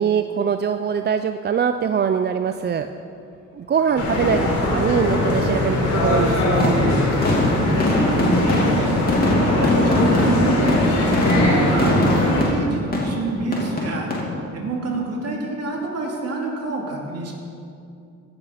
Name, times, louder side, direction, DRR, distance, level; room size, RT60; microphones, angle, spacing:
voice 1, 0.0-2.9 3.5-6.8, right 7 dB, 35° right, 9 dB, 0.4 m, -22 dB
sound 1, 4.0-12.4, left 1 dB, 70° left, 3.5 m, -21 dB
sound 2, 6.6-14.2, left 1 dB, 30° left, 2.9 m, -21 dB
voice 2, 7.9-9.0 9.6-14.1 14.5-17.3, right 3 dB, 55° right, -1 dB, 2.7 m, -28 dB
16.5 x 6.5 x 5.8 m, 2.5 s
cardioid pair, 90°, 30 cm